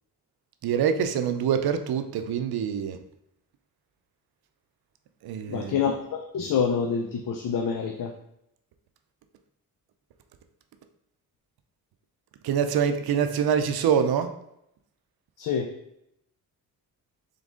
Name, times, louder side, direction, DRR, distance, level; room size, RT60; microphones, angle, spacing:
voice 1, 0.6-3.0 5.2-5.8 12.4-14.3, right 8 dB, 90° right, 0.5 m, -25 dB
voice 2, 5.5-8.1 15.4-15.7, left 6 dB, 60° left, 0.5 m, -27 dB
3.9 x 3.5 x 3.6 m
wide cardioid pair, 140°, 36 cm